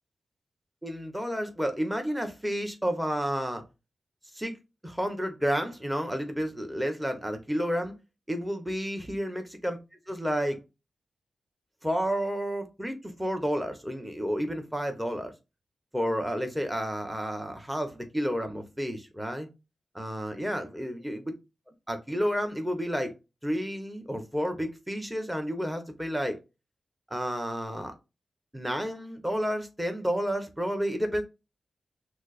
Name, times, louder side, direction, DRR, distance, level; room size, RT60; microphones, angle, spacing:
voice 1, 0.8-3.6 4.3-4.5 4.8-7.9 8.3-9.8 10.1-10.6 11.8-15.3 15.9-19.5 19.9-21.2 21.9-23.1 23.4-26.4 27.1-27.9 28.5-31.2, equal, 5° right, 5 dB, 1.0 m, -31 dB
6.0 x 2.0 x 2.4 m, 0.26 s
cardioid pair, 55°, 0 cm